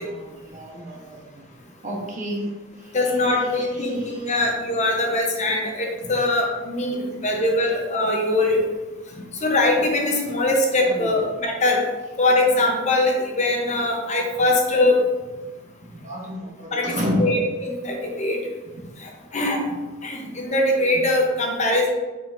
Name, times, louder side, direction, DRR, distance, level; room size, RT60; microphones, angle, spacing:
voice 1, 0.0-1.4 1.8-2.5 2.8-3.1 3.8-4.2 10.9-11.2 14.3-14.5 16.0-17.4 20.2-20.3 20.9-21.0, equal, 40° right, -1 dB, 1.2 m, -30 dB
voice 2, 2.9-8.6 9.4-11.8 12.2-15.1 16.7-18.5 19.0-21.9, left 2 dB, 35° left, 0 dB, 1.0 m, -22 dB
7.5 x 5.6 x 2.7 m, 1.2 s
head